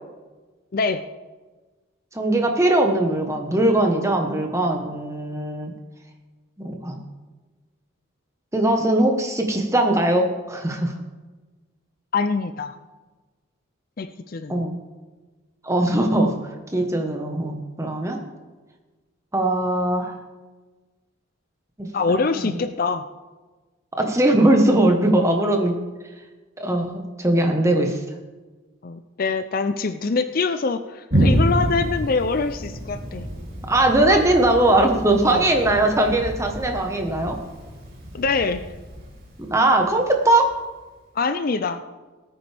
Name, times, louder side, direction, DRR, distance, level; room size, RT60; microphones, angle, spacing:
voice 1, 2.1-5.7 6.6-7.0 8.5-10.9 14.5-14.8 15.6-16.4 16.7-18.2 19.3-20.2 21.8-22.6 23.9-25.7 26.6-28.0 33.6-37.4 39.4-40.5, right 1 dB, 15° right, 3 dB, 1.2 m, -20 dB
voice 2, 12.1-12.8 14.0-14.6 21.9-23.0 28.8-33.3 34.0-34.2 35.2-35.4 38.1-38.6 41.1-41.9, left 4 dB, 45° left, 10 dB, 0.4 m, -24 dB
Thunder, 31.1-40.5, right 1 dB, 45° right, 3.0 m, -28 dB
18.5 x 9.1 x 3.5 m, 1.3 s
head